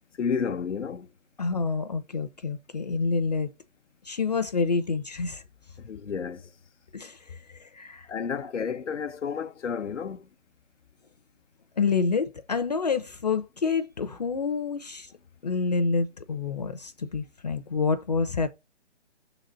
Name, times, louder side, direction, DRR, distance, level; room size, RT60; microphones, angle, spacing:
voice 1, 0.2-1.1 5.8-6.5 8.1-10.3, left 6 dB, 90° left, 0.7 m, -31 dB
voice 2, 1.4-3.5 4.1-5.4 6.9-8.1 8.4-8.5 11.8-15.1 15.4-18.5, left 4 dB, 35° left, 0.5 m, -28 dB
5.9 x 4.0 x 4.3 m
hypercardioid pair, 155°, 35 cm